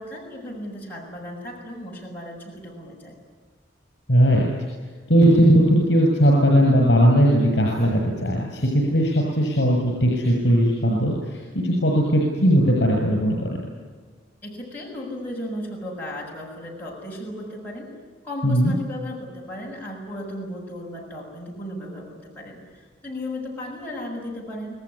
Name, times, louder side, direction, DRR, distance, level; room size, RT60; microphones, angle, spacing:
voice 1, 0.0-3.2 14.4-17.9 18.2-24.8, left 1 dB, 10° left, -4 dB, 7.2 m, -35 dB
voice 2, 4.1-4.5 5.1-13.6 18.4-18.7, equal, 65° left, 0 dB, 7.1 m, -18 dB
27.5 x 18.5 x 9.9 m, 1.5 s
head